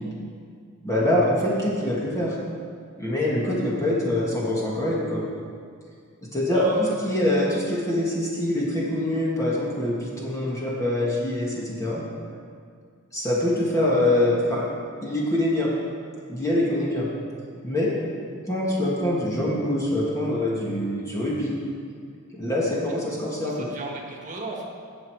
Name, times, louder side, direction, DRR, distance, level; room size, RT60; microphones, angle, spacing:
voice 1, 0.8-2.3 3.0-5.2 6.3-6.6 7.0-12.0 13.1-14.6 15.0-15.7 16.3-17.1 17.6-17.9 18.5-21.6 22.3-23.7, left 1 dB, 15° left, -5 dB, 1.7 m, -24 dB
voice 2, 6.5-6.9 22.9-23.0 23.4-24.6, right 2 dB, 35° right, 0 dB, 1.6 m, -32 dB
17.0 x 6.4 x 4.6 m, 2.1 s
head